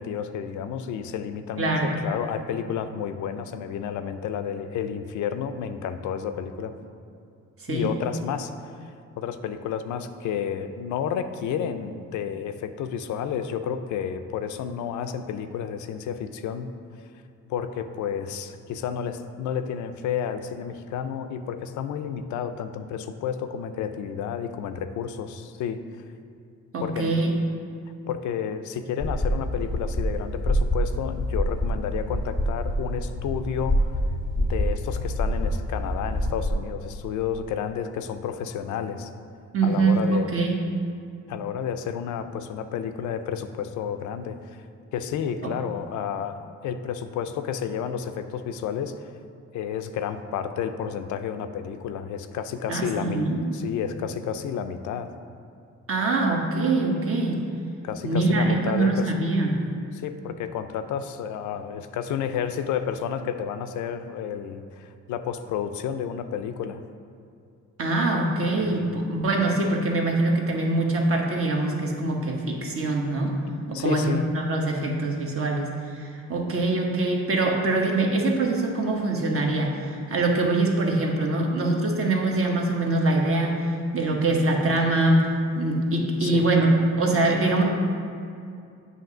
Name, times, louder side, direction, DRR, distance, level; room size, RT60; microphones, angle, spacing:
voice 1, 0.0-6.8 7.7-8.5 9.2-16.7 17.5-25.9 26.8-27.3 28.1-33.9 34.4-39.1 39.6-40.4 41.3-44.4 44.9-46.4 46.6-48.9 49.5-55.1 57.8-59.1 59.9-66.8 68.6-69.0 73.7-74.3 86.2-86.5, left 8 dB, 75° left, 9 dB, 0.5 m, -31 dB
voice 2, 1.6-1.9 7.6-7.9 26.7-27.3 39.5-40.5 45.4-45.5 52.7-53.4 55.9-57.4 58.0-59.6 67.8-73.3 73.7-85.3 85.6-86.7 87.0-87.6, right 2 dB, 45° right, 0 dB, 1.1 m, -24 dB
sound 1, 29.0-36.5, equal, ahead, 0.5 m, -26 dB
7.8 x 2.8 x 6.0 m, 2.4 s
cardioid pair, 90°, 30 cm